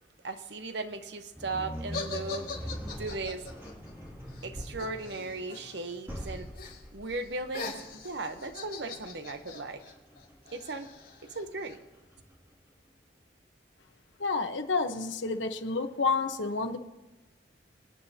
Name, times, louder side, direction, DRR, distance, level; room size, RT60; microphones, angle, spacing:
voice 1, 0.2-3.5 4.4-6.5 6.9-9.8 10.5-10.9 11.2-11.8, right 3 dB, 70° right, 8 dB, 1.0 m, -37 dB
sound 1, 1.3-12.5, equal, 15° right, 2.7 m, -44 dB
sound 2, 1.9-5.9 6.2-6.8 7.1-11.7, left 4 dB, 55° left, 4.4 m, -42 dB
voice 2, 14.2-16.8, left 4 dB, 90° left, 7 dB, 1.1 m, -29 dB
27.0 x 9.6 x 2.9 m, 1.0 s
head